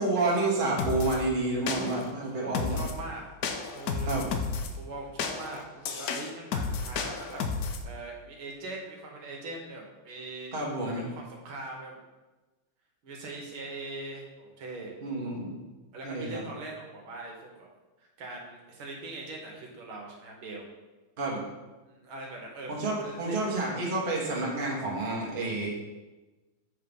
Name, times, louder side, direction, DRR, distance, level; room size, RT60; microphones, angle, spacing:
voice 1, 0.0-2.8 4.0-4.3 10.5-11.0 15.0-15.6 16.0-16.4 21.2-21.4 22.7-25.7, right 2 dB, 30° right, -3 dB, 1.3 m, -29 dB
sound 1, 0.8-1.2 1.7-2.1 2.5-3.0 3.4-4.7 5.2-7.8, left 5 dB, 85° left, 0.8 m, -32 dB
voice 2, 2.2-3.2 3.7-4.2 4.8-10.5 10.8-12.0 13.0-14.9 15.9-17.7 18.0-20.7 21.8-23.6, right 2 dB, 75° right, 0 dB, 1.9 m, -41 dB
7.4 x 3.8 x 5.2 m, 1.2 s
omnidirectional pair, 2.4 m